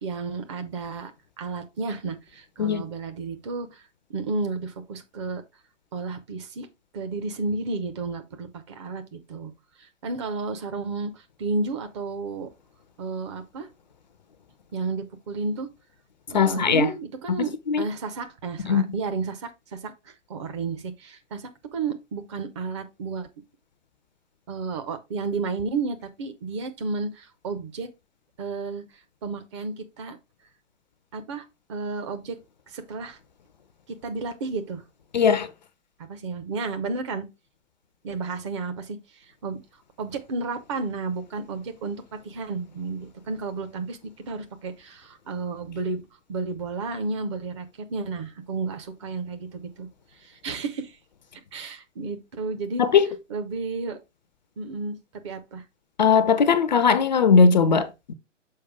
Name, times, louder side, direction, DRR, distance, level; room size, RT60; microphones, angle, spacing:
voice 1, 0.0-1.1 1.4-5.4 5.9-6.7 6.9-9.5 9.8-12.5 13.0-13.7 14.7-15.7 16.3-23.3 24.5-27.9 28.4-30.2 31.1-32.4 32.7-33.2 33.9-34.8 36.0-37.3 38.0-39.6 40.0-44.0 44.3-46.0 46.3-51.0 51.5-52.8 53.3-54.0 54.6-55.6, right 4 dB, 25° right, 0.7 m, -32 dB
voice 2, 16.3-16.9 17.4-17.8 18.7-18.9 35.1-35.5 52.8-53.0 56.0-58.1, left 5 dB, 35° left, 0.5 m, -19 dB
6.5 x 4.8 x 3.5 m
figure-of-eight pair, 130°, 38 cm